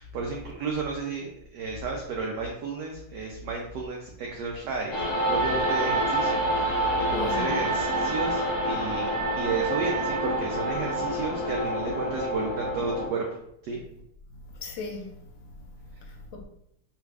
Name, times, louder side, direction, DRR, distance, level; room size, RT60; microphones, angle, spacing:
voice 1, 0.0-13.2 13.6-13.8, right 4 dB, 75° right, 1.0 m, -33 dB
sound 1, 4.9-13.1, equal, 50° left, 1.3 m, -28 dB
Wind instrument woodwind instrument, 5.4-11.0, right 8 dB, 45° right, 0.5 m, -34 dB
voice 2, 7.1-7.6 14.4-16.4, left 4 dB, 75° left, 1.2 m, -39 dB
3.4 x 2.4 x 3.2 m
omnidirectional pair, 2.3 m